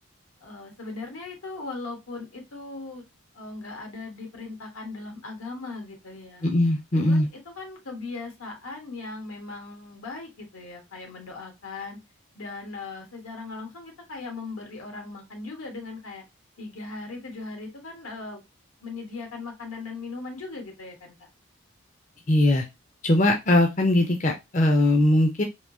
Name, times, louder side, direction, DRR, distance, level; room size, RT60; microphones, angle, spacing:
voice 1, 0.4-3.0 3.3-6.5 6.9-12.0 12.3-16.2 16.6-18.4 18.8-21.1, left 3 dB, 85° left, 1.2 m, -38 dB
voice 2, 6.4-7.3 22.3-22.6 23.0-25.4, left 1 dB, 35° left, 0.5 m, -20 dB
3.6 x 2.7 x 2.6 m
head